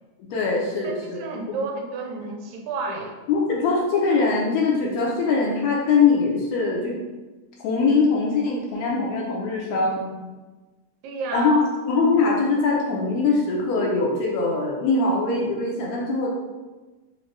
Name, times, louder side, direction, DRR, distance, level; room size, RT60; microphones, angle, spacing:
voice 1, 0.3-1.6 3.3-7.0 7.6-10.3 11.3-11.6 11.9-16.3, left 4 dB, 80° left, -2 dB, 1.7 m, -22 dB
voice 2, 0.8-3.1 11.0-11.6, right 4 dB, 80° right, 2 dB, 1.8 m, -31 dB
5.0 x 2.1 x 3.1 m, 1.2 s
omnidirectional pair, 3.3 m